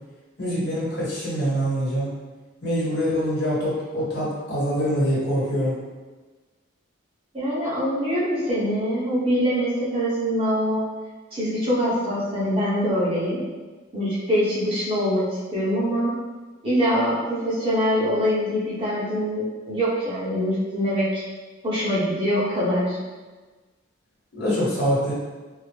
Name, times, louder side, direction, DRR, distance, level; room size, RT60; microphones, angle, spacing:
voice 1, 0.4-2.1 2.6-5.8 24.3-25.1, equal, 55° left, -7 dB, 1.2 m, -24 dB
voice 2, 7.3-10.8 11.3-13.4 13.9-15.2 15.5-16.1 16.6-21.2 21.6-23.0, equal, 25° right, -10 dB, 1.0 m, -24 dB
3.7 x 2.1 x 3.3 m, 1.3 s
head